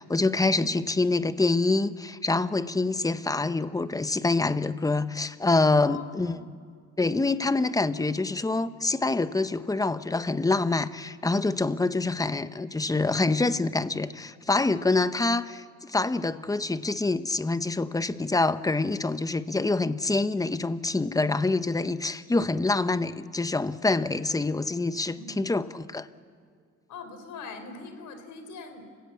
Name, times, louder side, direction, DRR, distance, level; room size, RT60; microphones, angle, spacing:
voice 1, 0.0-6.4 7.0-26.1, left 3 dB, 10° left, 13 dB, 0.9 m, -26 dB
voice 2, 5.8-6.4 25.1-25.4 26.9-29.0, left 4 dB, 80° left, 8 dB, 3.8 m, -43 dB
29.0 x 16.5 x 8.4 m, 2.1 s
cardioid pair, 90°, 30 cm